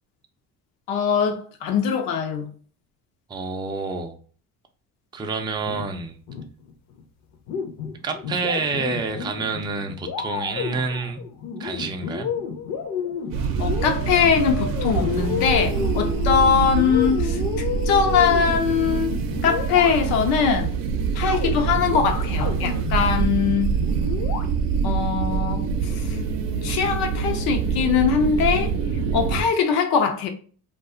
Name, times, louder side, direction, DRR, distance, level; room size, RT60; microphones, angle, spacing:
voice 1, 0.9-2.5 13.6-17.4 17.9-20.7 21.1-23.8 24.8-26.1 26.6-28.7 29.1-30.3, left 6 dB, 85° left, 0.7 m, -22 dB
voice 2, 3.3-4.2 5.1-6.2 8.0-11.2 11.6-12.3, right 4 dB, 15° right, 0.3 m, -28 dB
sound 1, 5.6-7.0 7.3-20.5 21.2-24.5, left 6 dB, 50° left, 0.6 m, -31 dB
sound 2, 13.3-29.4, right 6 dB, 70° right, 0.6 m, -25 dB
2.4 x 2.3 x 3.7 m
cardioid pair, 115°, 36 cm